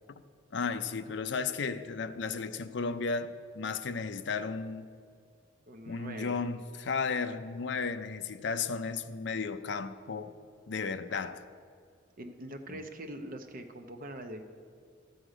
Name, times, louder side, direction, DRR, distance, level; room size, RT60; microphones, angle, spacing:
voice 1, 0.5-4.9 5.9-10.3 10.7-11.4 12.7-12.8, left 5 dB, 60° left, 0.5 m, -34 dB
voice 2, 5.7-6.4 12.2-14.4, right 1 dB, 45° right, 0.7 m, -43 dB
12.5 x 8.0 x 5.0 m
head